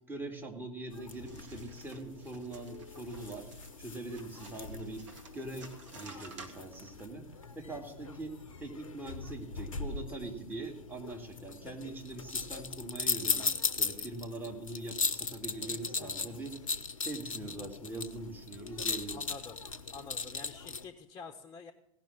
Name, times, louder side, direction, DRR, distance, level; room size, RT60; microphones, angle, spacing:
voice 1, 0.1-3.5 3.8-5.1 5.3-7.3 7.6-13.5 13.8-16.6 17.0-19.2, right 2 dB, 10° right, 2 dB, 2.2 m, -42 dB
sound 1, 0.9-20.9, left 4 dB, 75° left, 0.8 m, -39 dB
sound 2, 1.1-7.0, right 3 dB, 65° right, 1.6 m, -54 dB
voice 2, 19.1-19.6 19.9-21.7, left 5 dB, 20° left, 3 dB, 1.0 m, -47 dB
17.0 x 6.0 x 7.3 m, 0.79 s
figure-of-eight pair, 80°, 17 cm